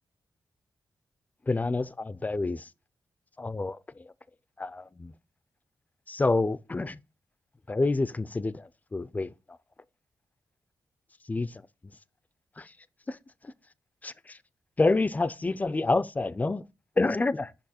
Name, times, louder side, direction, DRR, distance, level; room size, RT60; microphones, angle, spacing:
voice 1, 1.5-2.7 3.4-4.1 4.6-5.1 6.1-7.0 7.7-9.3 11.3-11.6 12.6-12.7 13.1-13.2 13.4-13.5 14.0-14.4 14.8-16.6 17.0-17.5, left 3 dB, 20° left, 0.4 m, -28 dB
6.5 x 5.5 x 4.2 m
wide cardioid pair, 110°, 8 cm